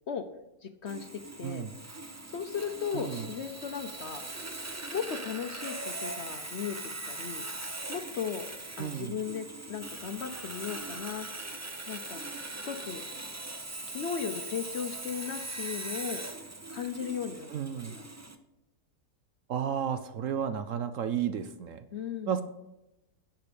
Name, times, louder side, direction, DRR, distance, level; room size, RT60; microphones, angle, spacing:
voice 1, 0.6-1.1 1.4-1.7 2.3-4.5 4.9-6.8 7.1-7.4 7.9-8.5 8.8-11.3 11.9-12.3 12.6-13.0 13.9-16.2 16.7-17.8 21.9-22.3, left 7 dB, 55° left, 8 dB, 0.9 m, -36 dB
Sawing, 0.9-18.4, right 2 dB, 20° right, 0.5 m, -40 dB
voice 2, 1.4-1.8 2.9-3.3 8.8-9.2 17.5-18.0 19.5-21.8 22.3-22.4, right 8 dB, 65° right, 11 dB, 0.9 m, -32 dB
11.0 x 7.8 x 5.2 m, 0.90 s
omnidirectional pair, 1.7 m